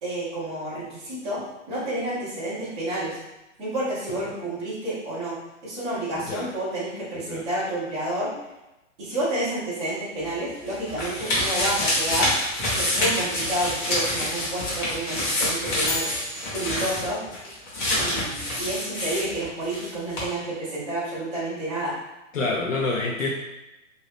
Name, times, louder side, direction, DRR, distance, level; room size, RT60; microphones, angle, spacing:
voice 1, 0.0-3.2 3.6-5.4 5.6-8.3 9.0-12.3 12.7-16.1 16.5-17.2 17.9-22.0, right 1 dB, 5° right, -13 dB, 0.3 m, -30 dB
sound 1, 10.2-19.9 20.1-20.2, left 1 dB, 20° left, 0.9 m, -27 dB
sound 2, 15.9-17.6, left 3 dB, 60° left, 1.0 m, -37 dB
voice 2, 22.3-23.3, left 3 dB, 90° left, -2 dB, 0.6 m, -27 dB
2.7 x 2.6 x 3.3 m, 0.98 s
hypercardioid pair, 140°, 38 cm